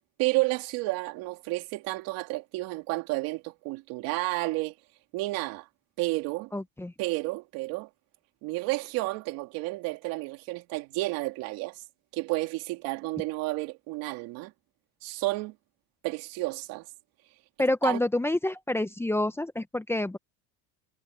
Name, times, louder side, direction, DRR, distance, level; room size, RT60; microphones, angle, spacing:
voice 1, 0.2-4.7 5.1-5.7 6.0-6.5 7.0-7.9 8.4-11.8 12.1-14.5 15.0-15.5 16.0-16.9 17.8-18.0, right 21 dB, 75° right, 3.1 m, -31 dB
voice 2, 6.5-6.9 17.6-20.2, left 1 dB, 5° left, 1.0 m, -28 dB
cardioid pair, 125°, 35 cm